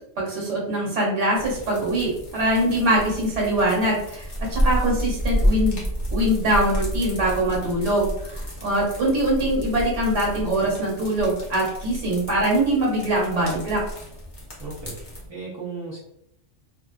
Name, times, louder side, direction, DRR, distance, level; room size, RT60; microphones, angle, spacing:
voice 1, 0.2-5.8 6.1-13.8, right 1 dB, 70° right, -3 dB, 1.2 m, -23 dB
sound 1, 1.3-15.3, equal, 30° left, 0.5 m, -30 dB
voice 2, 14.6-16.0, right 4 dB, 45° right, -9 dB, 0.3 m, -36 dB
2.4 x 2.3 x 2.3 m, 0.76 s
omnidirectional pair, 1.3 m